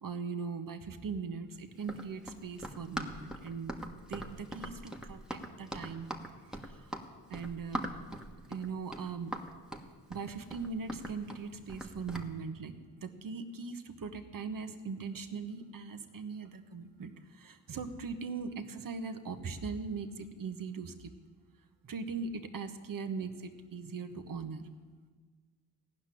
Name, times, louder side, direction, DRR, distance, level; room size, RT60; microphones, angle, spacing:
voice 1, 0.0-3.8 4.1-6.1 6.6-6.9 7.3-7.9 8.5-9.4 10.1-21.1 21.8-24.6, right 5 dB, 45° right, 8 dB, 1.3 m, -40 dB
Run, 1.8-12.3, right 1 dB, ahead, 1.4 m, -41 dB
16.0 x 6.0 x 9.9 m, 1.5 s
supercardioid pair, 65°, 45 cm